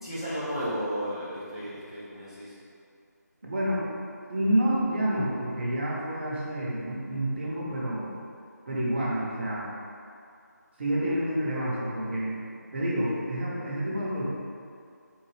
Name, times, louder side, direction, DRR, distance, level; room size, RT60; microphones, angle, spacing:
voice 1, 0.0-2.5, equal, 15° left, -11 dB, 0.3 m, -33 dB
voice 2, 3.4-3.9 4.3-8.1 8.7-9.7 10.8-12.3 12.7-14.3, right 1 dB, 40° right, -6 dB, 0.7 m, -28 dB
3.7 x 2.6 x 3.2 m, 2.4 s
figure-of-eight pair, 165°, 10 cm